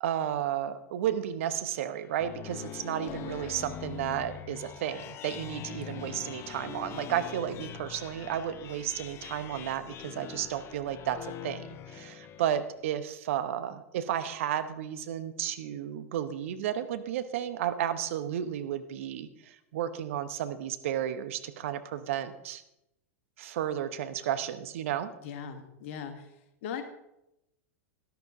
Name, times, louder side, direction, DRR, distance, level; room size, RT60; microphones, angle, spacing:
voice 1, 0.0-22.6 23.4-25.1, right 10 dB, 60° right, 12 dB, 0.9 m, -33 dB
sound 1, 1.9-12.8, left 9 dB, 35° left, 0.8 m, -43 dB
voice 2, 25.2-26.3 26.6-26.8, left 7 dB, 55° left, 8 dB, 1.6 m, -40 dB
12.5 x 12.0 x 3.7 m, 0.85 s
figure-of-eight pair, 90°, 8 cm